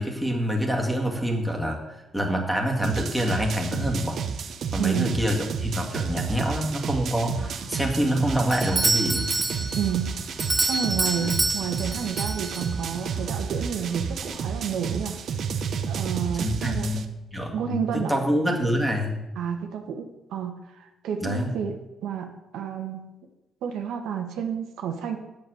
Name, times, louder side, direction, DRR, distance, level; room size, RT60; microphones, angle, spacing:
voice 1, 0.0-4.2 4.7-9.3 11.2-11.3 16.4-19.2 21.2-21.5, equal, ahead, 1 dB, 2.0 m, -26 dB
sound 1, 2.8-17.1, right 6 dB, 60° right, 0.8 m, -31 dB
voice 2, 4.8-5.1 9.8-10.2 10.7-15.2 15.9-16.9 17.5-18.1 19.4-21.7 22.0-23.1 23.6-25.2, right 8 dB, 80° right, 4 dB, 1.2 m, -30 dB
sound 2, 6.5-14.5, left 1 dB, 30° left, 2.5 m, -46 dB
Doorbell, 8.5-13.0, right 2 dB, 20° right, 0.5 m, -27 dB
8.1 x 7.0 x 6.4 m, 0.98 s
cardioid pair, 90°, 0 cm